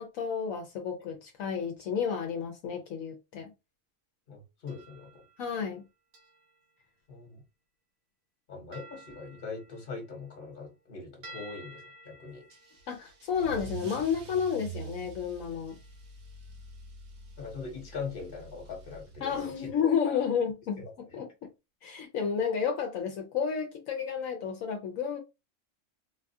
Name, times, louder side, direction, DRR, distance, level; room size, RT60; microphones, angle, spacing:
voice 1, 0.0-3.5 5.4-5.8 12.9-15.8 19.2-21.3 21.8-25.2, left 7 dB, 80° left, 1.1 m, -31 dB
voice 2, 4.3-5.2 7.1-7.4 8.5-12.5 17.4-19.7 20.1-20.2 20.8-20.9, left 4 dB, 45° left, 1.3 m, -41 dB
sound 1, 4.7-5.8 6.1-6.8 8.7-10.9 11.2-14.4 15.7-16.8 17.0-17.6 18.1-18.2 18.7-18.9 19.7-19.8, right 1 dB, 85° right, 1.5 m, -54 dB
Car / Engine starting / Accelerating revving vroom, 12.5-19.7, right 4 dB, 60° right, 1.0 m, -46 dB
4.1 x 2.3 x 2.6 m
omnidirectional pair, 1.4 m